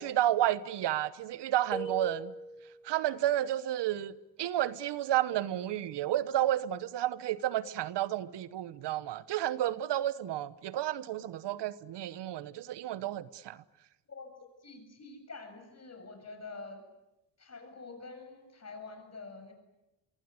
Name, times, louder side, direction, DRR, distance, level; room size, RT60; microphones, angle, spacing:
voice 1, 0.0-2.3 2.8-4.1 4.4-13.6, right 12 dB, 75° right, 1.0 m, -31 dB
sound 1, 1.7-2.9, right 3 dB, 5° left, 6.2 m, -39 dB
voice 2, 14.6-16.8 17.4-19.5, left 3 dB, 40° left, 7.4 m, -46 dB
25.0 x 23.0 x 9.7 m
cardioid pair, 80°, 42 cm